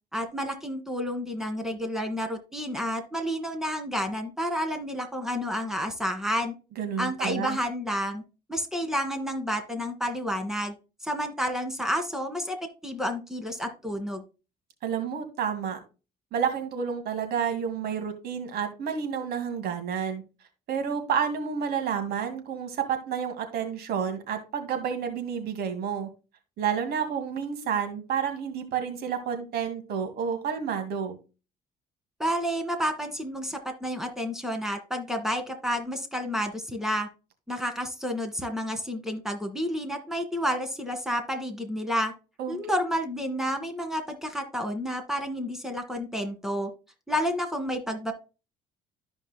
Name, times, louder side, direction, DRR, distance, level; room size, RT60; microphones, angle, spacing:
voice 1, 0.1-6.5 7.0-8.2 8.5-10.7 11.0-12.6 12.8-14.2 32.2-37.1 37.5-42.1 42.5-46.7 47.1-48.1, equal, 5° right, 6 dB, 1.9 m, -30 dB
voice 2, 6.8-7.6 14.8-15.8 16.3-20.2 20.7-26.1 26.6-31.2 42.4-42.6, right 7 dB, 70° right, 7 dB, 2.2 m, -30 dB
13.5 x 5.2 x 2.2 m, 0.31 s
cardioid pair, 110°, 17 cm